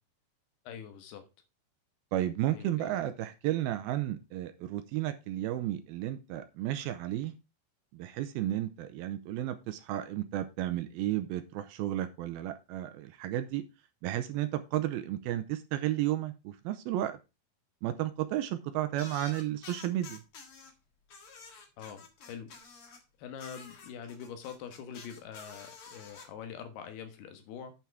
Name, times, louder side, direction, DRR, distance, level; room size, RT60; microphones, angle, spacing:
voice 1, 0.6-1.2 2.5-3.0 21.8-22.5 23.2-27.7, left 7 dB, 75° left, 7 dB, 3.3 m, -44 dB
voice 2, 2.1-7.3 7.9-13.6 14.0-17.2 17.8-20.2, right 13 dB, 80° right, 9 dB, 2.4 m, -33 dB
sound 1, 19.0-20.7 21.1-23.0 23.4-26.3, left 4 dB, 50° left, 1.7 m, -49 dB
8.7 x 5.8 x 4.6 m, 0.27 s
omnidirectional pair, 4.7 m